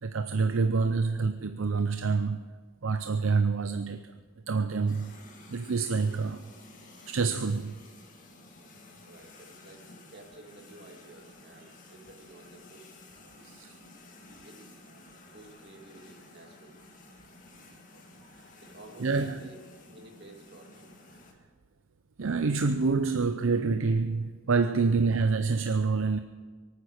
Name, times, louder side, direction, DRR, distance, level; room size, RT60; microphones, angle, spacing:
voice 1, 0.0-2.4 2.8-4.1 4.5-5.1 5.5-6.5 7.1-7.8 13.4-13.7 19.0-19.4 22.2-26.2, right 4 dB, 70° right, 0.6 m, -27 dB
sound 1, 4.9-21.3, left 2 dB, 40° left, 2.0 m, -53 dB
voice 2, 9.0-14.0 14.2-14.7 15.2-16.8 17.5-17.9 18.6-19.6 19.9-20.8, right 2 dB, 50° right, 2.5 m, -52 dB
23.5 x 9.3 x 6.5 m
head